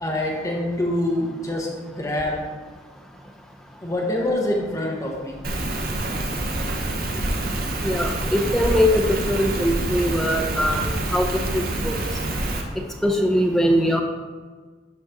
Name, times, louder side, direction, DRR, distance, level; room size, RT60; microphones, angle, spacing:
voice 1, 0.0-2.4 3.8-5.4, left 1 dB, 20° left, -2 dB, 1.1 m, -25 dB
Rain, 5.4-12.6, right 1 dB, 50° right, 0.9 m, -26 dB
voice 2, 7.8-10.8 11.1-11.3 11.5-11.9 13.0-14.0, equal, ahead, 0 dB, 0.6 m, -21 dB
12.0 x 4.3 x 3.6 m, 1.4 s
head